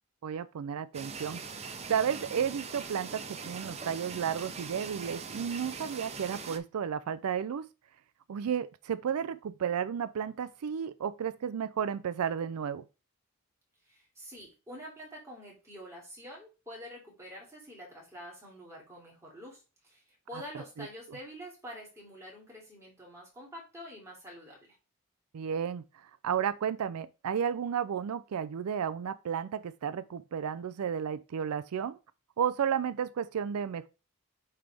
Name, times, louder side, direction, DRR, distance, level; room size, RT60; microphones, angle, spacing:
voice 1, 0.2-7.6 8.3-12.8 20.8-20.9 25.3-25.8 26.2-32.0 32.4-33.9, right 8 dB, 85° right, 0.4 m, -33 dB
sound 1, 0.9-6.6, right 5 dB, 30° right, 0.5 m, -41 dB
voice 2, 13.8-24.8, equal, 15° right, 2.7 m, -47 dB
8.9 x 3.4 x 3.4 m
head